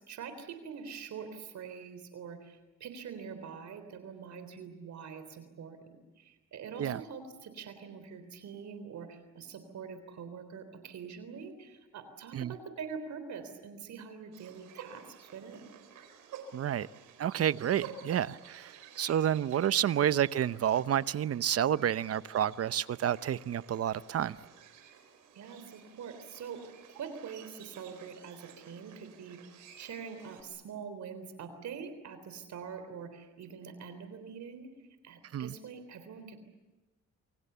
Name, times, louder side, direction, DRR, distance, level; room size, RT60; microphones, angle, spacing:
voice 1, 0.0-5.8 6.2-15.7 25.3-26.6 26.9-36.4, right 6 dB, 70° right, 9 dB, 3.7 m, -44 dB
sound 1, 14.3-30.4, right 7 dB, 85° right, 4.3 m, -53 dB
voice 2, 16.5-16.9 17.2-24.4 35.3-35.5, right 10 dB, 50° right, 16 dB, 0.8 m, -30 dB
28.0 x 25.5 x 6.9 m, 1.1 s
cardioid pair, 90°, 30 cm